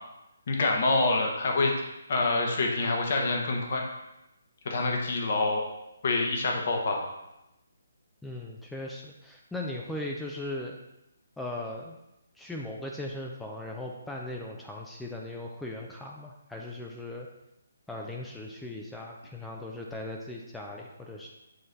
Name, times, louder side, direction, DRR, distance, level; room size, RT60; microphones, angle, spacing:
voice 1, 0.5-1.7 2.1-3.8 4.6-5.6 6.0-7.0, left 2 dB, 50° left, 1 dB, 1.1 m, -26 dB
voice 2, 8.2-10.8 11.4-12.0 12.3-17.3 17.9-21.3, left 1 dB, 5° left, -1 dB, 0.4 m, -38 dB
7.8 x 3.2 x 3.9 m, 0.90 s
figure-of-eight pair, 140°, 0 cm